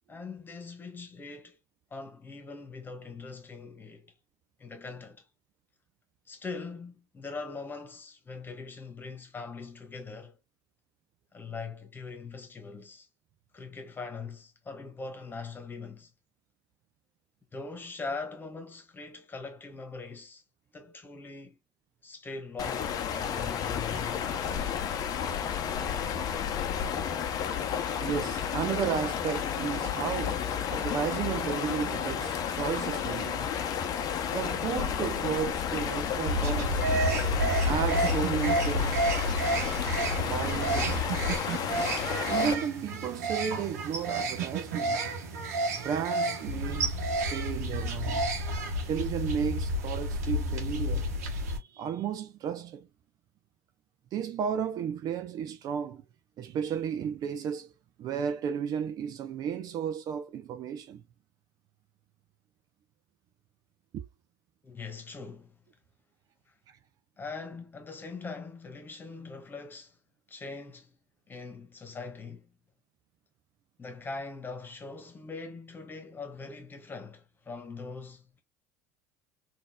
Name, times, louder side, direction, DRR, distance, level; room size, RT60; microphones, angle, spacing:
voice 1, 0.1-1.6 1.9-4.1 4.6-5.2 6.3-10.4 11.3-13.1 13.5-16.1 17.5-20.4 20.7-21.6 22.0-24.3 64.6-65.6 67.2-70.0 70.3-70.9 71.3-72.5 73.8-78.4, left 4 dB, 25° left, 1.4 m, -41 dB
sound 1, 22.6-42.5, left 8 dB, 50° left, 0.7 m, -32 dB
voice 2, 28.0-33.5 34.3-36.8 37.7-39.0 40.2-41.4 42.3-45.1 45.7-48.4 48.9-51.2 51.6-52.9 54.1-56.0 56.4-57.7 58.0-61.0 63.9-64.1 66.7-66.8, right 8 dB, 50° right, 0.6 m, -33 dB
sound 2, 36.3-51.6, right 1 dB, 75° right, 1.0 m, -30 dB
3.9 x 2.7 x 2.3 m
hypercardioid pair, 70°, 8 cm